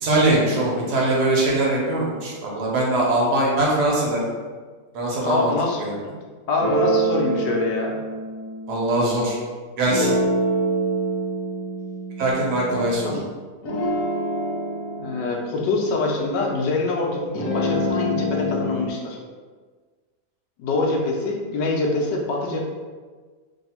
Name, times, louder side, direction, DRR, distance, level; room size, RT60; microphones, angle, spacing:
voice 1, 0.0-4.3 4.9-5.5 5.8-6.0 8.7-9.4 9.8-10.1 12.2-13.2, right 2 dB, 70° right, -3 dB, 1.4 m, -21 dB
voice 2, 5.2-5.9 6.5-8.0 13.1-13.2 15.0-19.2 20.6-22.6, left 3 dB, 85° left, 0 dB, 1.3 m, -24 dB
sound 1, 6.6-9.3 9.8-13.2 13.6-16.8 17.3-18.9, right 1 dB, 60° left, 1.1 m, -26 dB
3.2 x 2.6 x 4.2 m, 1.5 s
omnidirectional pair, 1.9 m